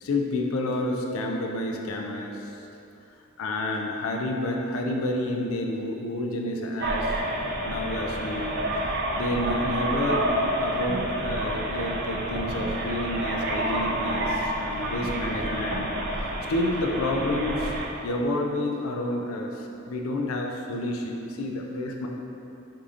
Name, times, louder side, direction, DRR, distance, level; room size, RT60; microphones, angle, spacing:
voice 1, 0.0-2.6 3.4-7.2 7.6-8.6 8.9-10.3 10.6-15.9 16.5-17.7 18.0-22.1, left 1 dB, 85° left, 2 dB, 0.4 m, -29 dB
sound 1, 6.8-17.9, right 1 dB, 55° right, 0.4 m, -29 dB
4.8 x 2.7 x 2.5 m, 2.8 s
head